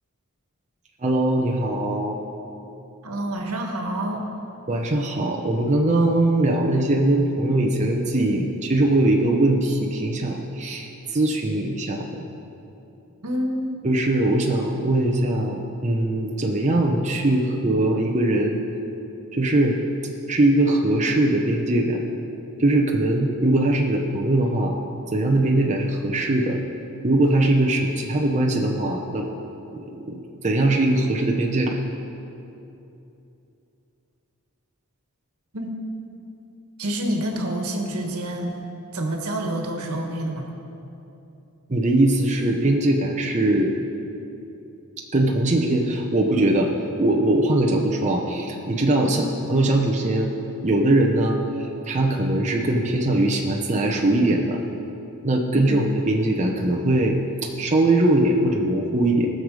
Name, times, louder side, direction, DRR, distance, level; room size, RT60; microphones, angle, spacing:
voice 1, 1.0-2.2 4.7-12.2 13.8-18.6 19.3-19.8 20.3-22.0 22.6-24.7 25.1-26.6 27.0-29.3 29.7-31.8 41.7-43.7 45.1-46.7 47.0-50.3 50.6-54.6 55.2-57.2 57.4-59.3, right 1 dB, 30° right, 0 dB, 0.8 m, -21 dB
voice 2, 3.0-4.3 13.2-13.8 35.5-35.8 36.8-38.6 38.9-40.5 49.1-49.3 55.5-55.9, right 1 dB, 75° right, 2 dB, 1.5 m, -28 dB
19.0 x 6.7 x 4.8 m, 2.9 s
head